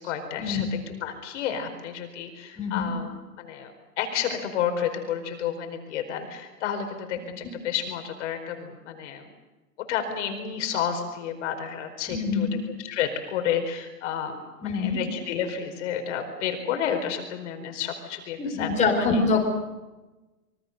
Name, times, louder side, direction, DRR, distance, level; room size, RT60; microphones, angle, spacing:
voice 1, 0.0-9.3 9.8-12.5 12.8-19.2, left 8 dB, 50° left, 6 dB, 4.7 m, -31 dB
voice 2, 2.6-2.9 12.1-12.5 14.6-15.0 18.4-19.5, left 4 dB, 15° left, 2 dB, 4.8 m, -25 dB
26.5 x 24.0 x 6.7 m, 1.1 s
hypercardioid pair, 130°, 46 cm